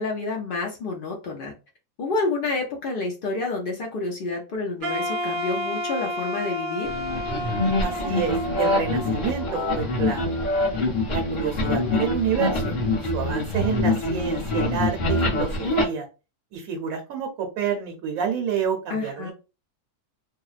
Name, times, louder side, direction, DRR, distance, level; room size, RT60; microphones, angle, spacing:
voice 1, 0.0-1.5 2.0-6.9 18.9-19.3, left 3 dB, 75° left, 0 dB, 0.5 m, -29 dB
Wind instrument woodwind instrument, 4.8-9.9, equal, 55° right, 0.6 m, -31 dB
sound 1, 6.8-15.8, left 2 dB, 35° left, 0.9 m, -25 dB
voice 2, 7.8-10.4 11.1-16.1 16.5-19.3, right 7 dB, 75° right, 3 dB, 1.0 m, -29 dB
2.7 x 2.0 x 2.4 m, 0.30 s
omnidirectional pair, 1.5 m